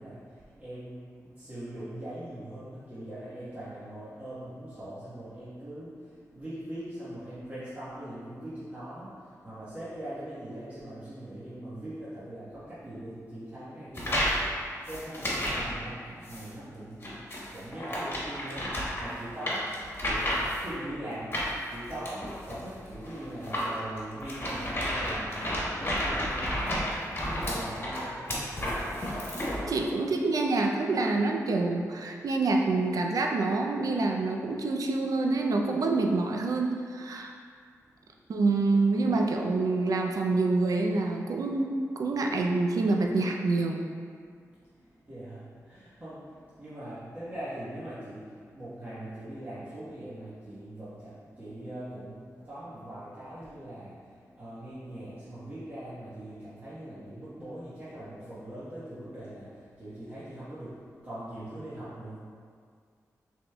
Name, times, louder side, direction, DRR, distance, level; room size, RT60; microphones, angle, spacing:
voice 1, 0.0-17.2 17.5-28.6 37.9-38.0 44.4-62.2, right 1 dB, 25° right, -12 dB, 1.2 m, -41 dB
sound 1, 14.0-14.4 14.9-15.7 16.2-16.5 17.0-20.7 21.3-29.7, equal, 40° left, 1.3 m, -31 dB
voice 2, 29.7-37.3 38.3-43.8, right 3 dB, 75° right, 2 dB, 0.5 m, -27 dB
6.0 x 3.5 x 2.3 m, 2.1 s
cardioid pair, 80°, 6 cm